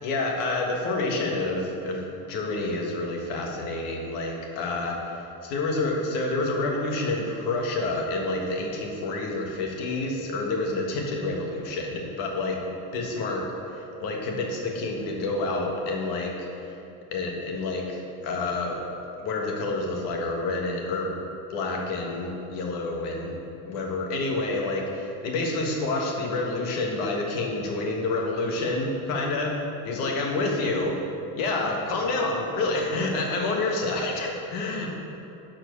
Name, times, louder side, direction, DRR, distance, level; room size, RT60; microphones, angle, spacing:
voice 1, 0.0-16.8 17.1-18.8 19.2-21.1 21.5-23.4 23.6-29.5 29.8-30.9 31.3-34.9, left 2 dB, 60° left, 0 dB, 1.5 m, -28 dB
9.8 x 4.6 x 6.4 m, 2.8 s
cardioid pair, 170°, 38 cm